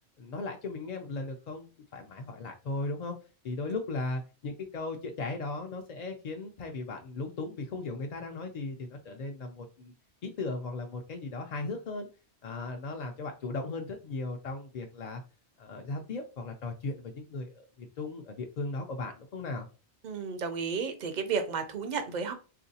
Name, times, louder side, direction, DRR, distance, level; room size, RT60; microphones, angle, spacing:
voice 1, 0.2-3.2 3.4-9.9 10.2-12.1 12.4-15.2 15.6-19.7, left 3 dB, 55° left, 3 dB, 0.5 m, -37 dB
voice 2, 20.0-22.3, right 5 dB, 55° right, 8 dB, 0.6 m, -32 dB
3.7 x 2.5 x 2.7 m, 0.32 s
omnidirectional pair, 1.1 m